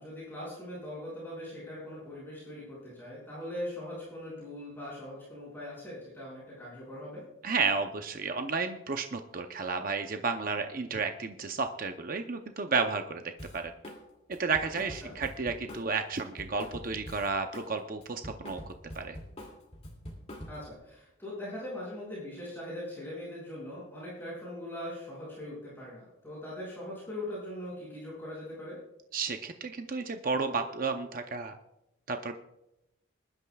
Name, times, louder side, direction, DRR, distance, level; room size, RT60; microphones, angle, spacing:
voice 1, 0.0-7.3 14.8-15.1 20.5-28.8, left 1 dB, 10° left, -8 dB, 5.9 m, -41 dB
voice 2, 7.4-13.2 13.5-13.7 14.3-18.6 18.9-19.2 29.1-31.6 32.1-32.3, right 4 dB, 45° right, 6 dB, 0.6 m, -32 dB
Drum kit, 13.4-14.0 14.3-17.7 18.0-20.7, equal, 30° left, 2.4 m, -44 dB
21.5 x 11.5 x 2.3 m, 0.87 s
head